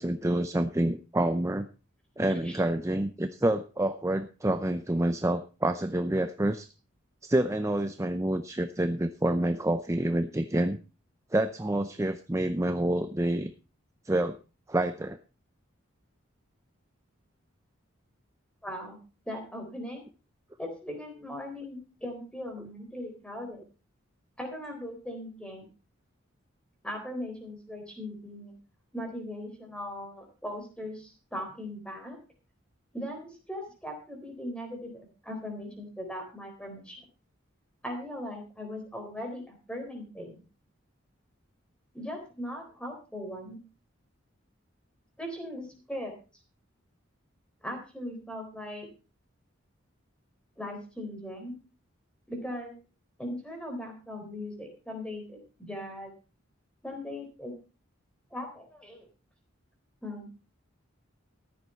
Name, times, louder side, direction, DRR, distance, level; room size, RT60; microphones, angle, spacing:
voice 1, 0.0-1.7 2.2-6.7 7.2-10.8 11.3-13.5 14.0-14.4 14.7-15.2, right 1 dB, 15° right, 10 dB, 0.5 m, -28 dB
voice 2, 2.3-2.6 18.6-19.0 19.3-20.0 20.6-23.6 24.4-25.7 26.8-28.5 28.9-32.2 32.9-37.0 37.8-40.4 41.9-43.6 45.2-46.1 47.6-48.9 50.6-51.5 52.3-52.7 53.2-56.1 56.8-57.5 58.3-59.1 60.0-60.3, left 1 dB, 5° left, 3 dB, 4.0 m, -39 dB
14.0 x 10.0 x 4.4 m, 0.33 s
head